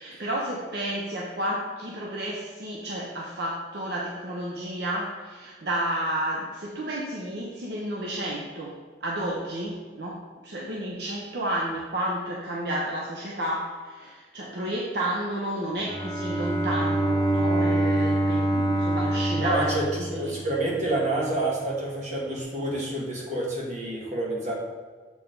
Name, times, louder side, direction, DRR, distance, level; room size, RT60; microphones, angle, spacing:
voice 1, 0.0-20.4, right 1 dB, 60° right, -3 dB, 0.9 m, -31 dB
Bowed string instrument, 15.8-20.8, right 1 dB, 15° left, 0.8 m, -25 dB
voice 2, 19.3-24.5, right 1 dB, 40° right, -4 dB, 1.8 m, -28 dB
7.3 x 4.9 x 3.9 m, 1.5 s
head